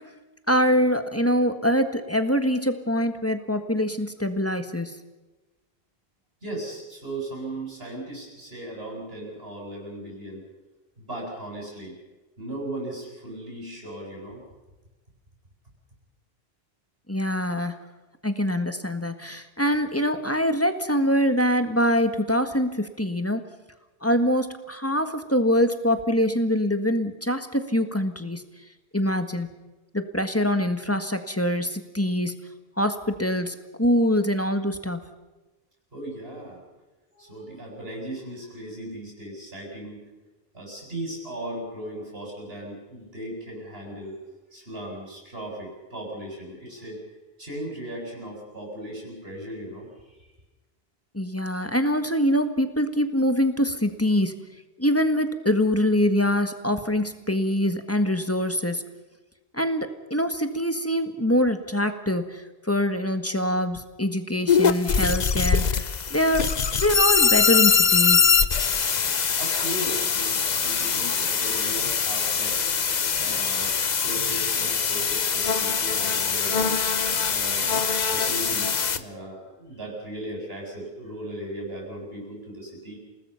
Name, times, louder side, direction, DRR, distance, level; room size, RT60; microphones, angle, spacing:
voice 1, 0.5-4.9 17.1-17.7 18.2-23.4 24.0-28.4 28.9-29.5 29.9-32.4 32.8-35.0 51.1-54.3 54.8-58.8 59.5-66.5 66.8-68.3, equal, 15° left, 7 dB, 1.6 m, -24 dB
voice 2, 6.4-10.4 11.0-12.0 12.4-14.4 35.9-36.6 37.1-40.0 40.5-44.2 44.5-47.0 47.4-50.2 69.4-72.6 73.2-76.8 77.3-83.0, right 1 dB, 70° right, -1 dB, 7.8 m, -37 dB
sound 1, 64.5-79.0, left 6 dB, 45° left, 0.9 m, -23 dB
28.5 x 19.0 x 5.7 m, 1.1 s
omnidirectional pair, 1.1 m